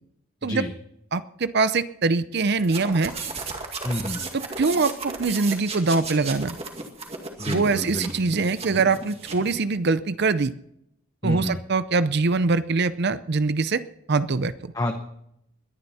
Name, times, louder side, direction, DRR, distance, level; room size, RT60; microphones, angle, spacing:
voice 1, 1.1-3.1 4.3-6.6 7.4-10.5 11.2-13.8 14.1-14.7, right 3 dB, 50° right, 14 dB, 0.6 m, -23 dB
sound 1, 2.6-9.6, right 4 dB, 30° right, 2.1 m, -35 dB
voice 2, 3.8-4.2 7.4-8.1 11.2-11.6 14.7-15.0, left 1 dB, 15° left, 5 dB, 0.9 m, -28 dB
21.5 x 10.5 x 4.2 m, 0.76 s
head